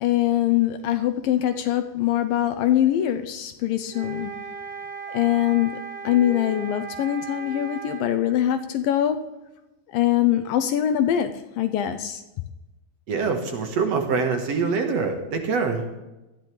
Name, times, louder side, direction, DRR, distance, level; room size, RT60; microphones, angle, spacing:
voice 1, 0.0-4.3 5.1-5.8 6.0-9.2 9.9-11.3 11.6-12.2, left 11 dB, 75° left, 8 dB, 2.3 m, -23 dB
sound 1, 3.9-8.1, right 5 dB, 80° right, 6.1 m, -36 dB
voice 2, 13.1-15.9, right 5 dB, 55° right, 4 dB, 2.2 m, -24 dB
19.0 x 13.0 x 3.4 m, 1.0 s
omnidirectional pair, 4.3 m